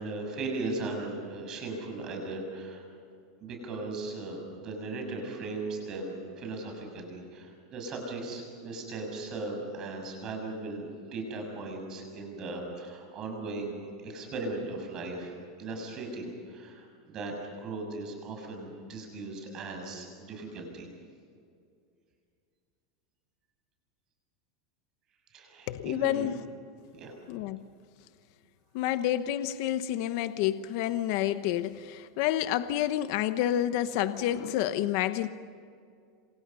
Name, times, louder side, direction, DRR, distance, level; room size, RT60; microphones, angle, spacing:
voice 1, 0.0-2.9 3.4-20.9 25.3-26.3 27.0-27.2, right 2 dB, 25° right, 2 dB, 6.5 m, -38 dB
voice 2, 25.7-26.4 27.3-27.6 28.7-35.3, left 12 dB, 50° left, 11 dB, 1.0 m, -29 dB
27.5 x 27.0 x 5.6 m, 2.3 s
supercardioid pair, 170°, 2 cm